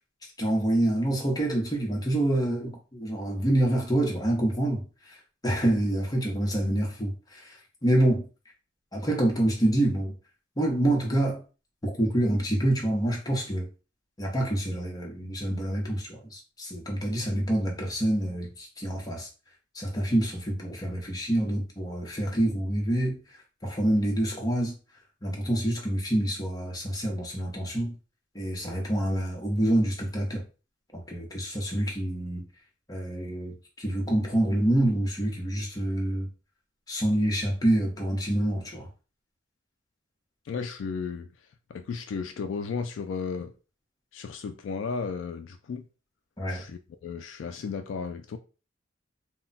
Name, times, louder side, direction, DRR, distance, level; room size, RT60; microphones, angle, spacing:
voice 1, 0.4-4.8 5.4-7.2 7.8-8.2 8.9-10.1 10.6-11.4 11.8-13.7 14.2-19.3 19.7-23.2 23.6-24.7 25.2-27.9 28.3-30.4 31.1-32.4 32.9-36.3 36.9-38.9 46.4-46.6, right 1 dB, 20° left, 0.7 m, -26 dB
voice 2, 40.5-41.3 41.7-43.5 44.1-45.8 46.5-48.4, left 5 dB, 70° left, 0.3 m, -34 dB
2.2 x 2.2 x 3.8 m
head